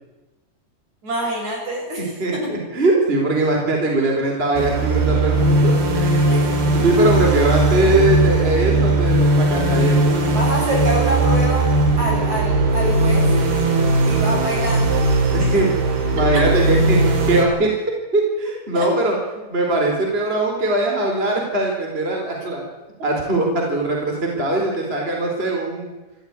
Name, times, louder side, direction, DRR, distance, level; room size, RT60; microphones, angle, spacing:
voice 1, 1.0-2.4 6.3-6.4 6.7-6.8 10.3-13.3 14.0-15.0 16.3-16.4 18.7-18.9, right 1 dB, 45° right, 0 dB, 8.3 m, -25 dB
voice 2, 2.2-6.2 6.8-10.3 15.5-15.7 16.1-17.8 18.1-19.2 19.5-22.6 23.0-25.9, right 2 dB, 15° right, 0 dB, 3.9 m, -21 dB
sound 1, 4.5-17.4, right 2 dB, 70° right, 5.0 m, -18 dB
26.0 x 14.5 x 9.6 m, 1.1 s
omnidirectional pair, 4.6 m